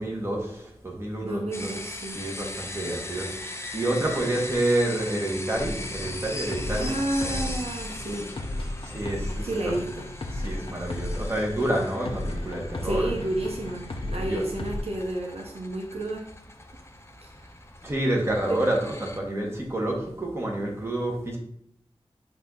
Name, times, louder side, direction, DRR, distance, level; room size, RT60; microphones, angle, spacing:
voice 1, 0.0-1.7 2.1-3.3 3.7-7.5 8.8-9.7 10.3-13.2 14.1-14.4 17.8-21.4, right 1 dB, 25° right, -1 dB, 1.7 m, -28 dB
voice 2, 1.2-2.2 6.7-8.3 9.4-10.0 12.8-16.2 17.2-17.5 18.5-18.6, right 1 dB, 70° right, -1 dB, 1.0 m, -31 dB
sound 1, 1.5-19.2, left 2 dB, 25° left, 0.7 m, -40 dB
sound 2, 5.6-14.8, left 1 dB, 55° left, 0.9 m, -34 dB
8.9 x 3.0 x 3.9 m, 0.70 s
wide cardioid pair, 80°, 11 cm